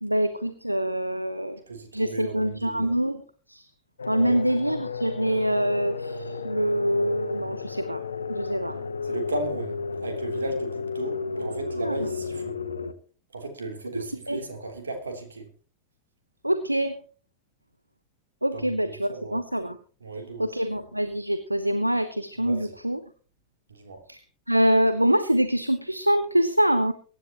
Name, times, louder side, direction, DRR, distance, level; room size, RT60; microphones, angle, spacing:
voice 1, 0.0-1.6 1.9-3.2 3.5-3.7 4.1-8.0 8.3-8.8 11.4-11.5 11.8-11.9 13.9-14.4 16.4-16.9 18.4-19.8 20.4-23.0 24.1-24.2 24.5-26.9, equal, 90° right, 10 dB, 0.9 m, -25 dB
voice 2, 1.7-2.9 4.1-4.4 9.0-12.6 13.3-15.5 18.5-19.4 20.0-20.5 22.4-22.7 23.7-24.0, right 2 dB, 70° right, 4 dB, 3.3 m, -35 dB
sound 1, 4.0-12.9, left 4 dB, 75° left, 0.9 m, -33 dB
23.5 x 9.9 x 3.0 m, 0.41 s
figure-of-eight pair, 90°, 0 cm